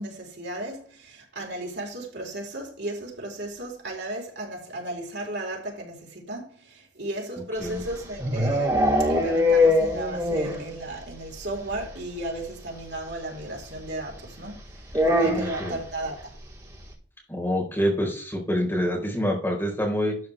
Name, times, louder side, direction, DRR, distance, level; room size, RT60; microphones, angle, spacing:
voice 1, 0.0-14.6 15.0-16.3, right 1 dB, 65° right, 4.1 m, -35 dB
sound 1, 7.6-10.7 11.0-11.1 11.4-11.5 11.7-11.9 13.1-13.2 14.9-15.8, left 1 dB, 20° right, 3.9 m, -22 dB
voice 2, 15.2-15.8 17.3-20.2, equal, 10° left, 4.2 m, -26 dB
12.5 x 8.5 x 3.4 m
head